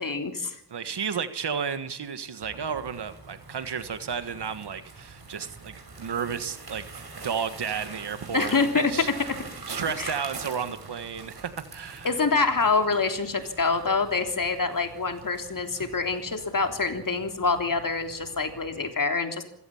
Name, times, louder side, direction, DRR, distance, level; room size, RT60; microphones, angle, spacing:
voice 1, 0.0-0.6 8.3-8.9 10.0-10.1 12.0-19.4, left 4 dB, 55° left, 6 dB, 3.4 m, -26 dB
voice 2, 0.7-8.6 8.9-9.1 9.7-12.1, right 7 dB, 85° right, 11 dB, 1.6 m, -32 dB
sound 1, 2.4-18.9, right 3 dB, 65° right, 6.2 m, -44 dB
26.5 x 16.5 x 7.2 m, 0.71 s
wide cardioid pair, 65°, 39 cm